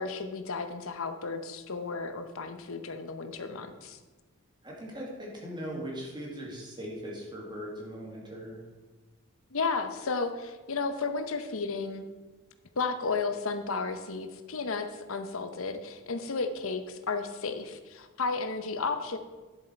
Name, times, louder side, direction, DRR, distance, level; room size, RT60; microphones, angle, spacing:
voice 1, 0.0-4.0 9.5-12.1 12.8-19.2, left 4 dB, 65° left, 8 dB, 0.8 m, -33 dB
voice 2, 4.6-8.6, equal, 20° right, -2 dB, 2.0 m, -39 dB
10.5 x 7.3 x 4.4 m, 1.3 s
head